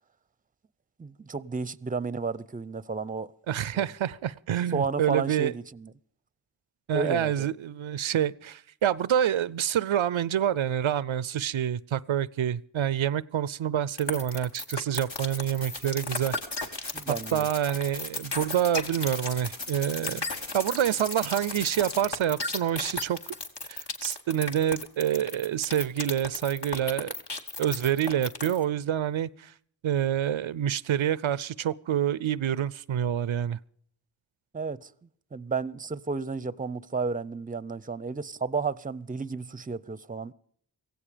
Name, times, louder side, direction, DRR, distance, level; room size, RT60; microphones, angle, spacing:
voice 1, 1.0-3.3 3.7-3.8 4.7-5.9 6.9-7.5 16.9-17.5 34.5-34.9 35.3-40.3, right 4 dB, 20° right, 0.5 m, -32 dB
voice 2, 3.5-5.5 6.9-16.4 17.3-20.2 20.5-23.3 23.7-27.1 27.6-29.5 29.8-33.6, right 10 dB, 90° right, 0.5 m, -27 dB
sound 1, 14.0-28.6, left 3 dB, 60° left, 1.8 m, -34 dB
sound 2, 15.0-22.0, left 2 dB, 75° left, 2.4 m, -38 dB
16.0 x 16.0 x 5.0 m
wide cardioid pair, 45°, 46 cm